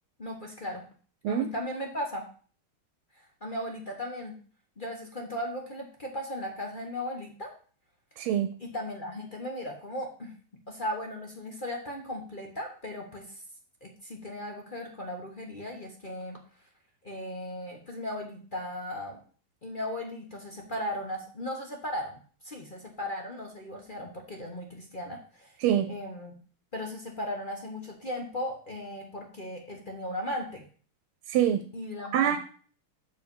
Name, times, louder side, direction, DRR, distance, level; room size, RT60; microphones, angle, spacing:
voice 1, 0.2-0.8 1.3-2.3 3.4-4.4 4.8-7.5 8.6-10.4 10.7-13.3 13.8-16.4 17.0-19.2 19.6-22.2 22.4-25.5 25.9-26.3 26.7-30.6 31.7-32.4, left 1 dB, 35° left, 1 dB, 0.9 m, -36 dB
voice 2, 8.2-8.5 25.6-25.9 31.3-31.6 32.1-32.4, right 10 dB, 85° right, 9 dB, 1.5 m, -25 dB
6.7 x 4.9 x 5.4 m, 0.42 s
omnidirectional pair, 2.3 m